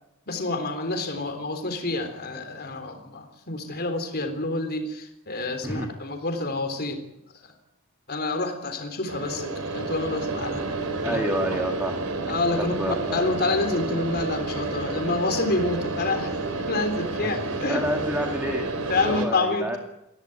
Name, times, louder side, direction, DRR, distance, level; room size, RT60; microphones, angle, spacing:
voice 1, 0.3-7.0 8.1-10.6 11.0-11.2 12.3-16.4 16.7-17.8 18.9-19.7, left 2 dB, 50° left, 7 dB, 3.6 m, -28 dB
sound 1, 9.1-19.3, right 3 dB, 75° right, 3.7 m, -30 dB
voice 2, 11.0-12.2 12.6-13.3 17.2-17.3 17.7-19.8, equal, 10° right, 2 dB, 2.5 m, -29 dB
22.0 x 16.5 x 9.1 m, 0.85 s
head